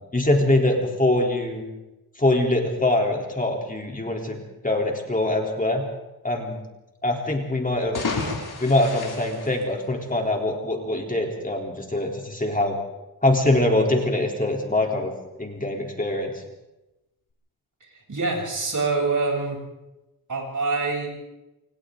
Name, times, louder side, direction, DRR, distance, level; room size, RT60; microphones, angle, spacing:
voice 1, 0.1-1.6 2.2-4.4 4.6-5.8 6.2-6.6 7.0-8.0 8.6-12.8 13.2-15.1 15.4-16.3, left 1 dB, 20° left, 1 dB, 3.6 m, -23 dB
sound 1, 7.7-10.3, left 4 dB, 80° left, 6.3 m, -32 dB
voice 2, 17.8-19.6 20.3-21.1, right 3 dB, 55° right, 0 dB, 7.9 m, -25 dB
28.0 x 27.0 x 3.9 m, 0.97 s
wide cardioid pair, 105°, 37 cm